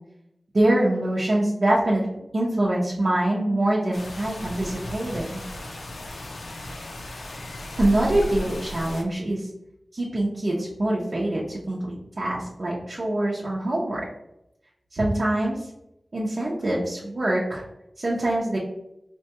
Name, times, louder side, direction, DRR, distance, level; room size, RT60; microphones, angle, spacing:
voice 1, 0.5-5.4 7.8-9.5 9.9-14.0 14.9-15.7 16.1-17.7 18.0-18.6, right 1 dB, 60° right, -6 dB, 0.7 m, -24 dB
sound 1, 3.9-9.0, left 1 dB, 80° left, 0.5 m, -35 dB
4.3 x 2.2 x 2.9 m, 0.84 s
wide cardioid pair, 55°, 0 cm